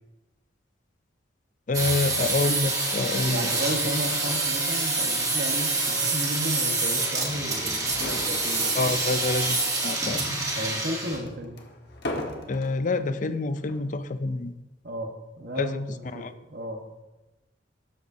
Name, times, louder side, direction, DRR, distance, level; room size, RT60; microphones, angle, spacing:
voice 1, 1.7-3.5 3.8-3.9 8.7-10.2 12.5-14.5 15.6-15.8 16.1-16.3, left 3 dB, 45° left, 11 dB, 0.5 m, -27 dB
sound 1, 1.7-11.2, right 3 dB, 20° right, 1.4 m, -27 dB
voice 2, 3.2-9.0 10.5-11.6 14.8-15.1 15.4-16.8, equal, 55° right, 2 dB, 1.3 m, -34 dB
sound 2, 7.8-9.0 9.4-9.6 10.2-12.8 13.6-13.9, left 1 dB, 60° left, 1.3 m, -37 dB
12.5 x 8.0 x 2.7 m, 1.0 s
head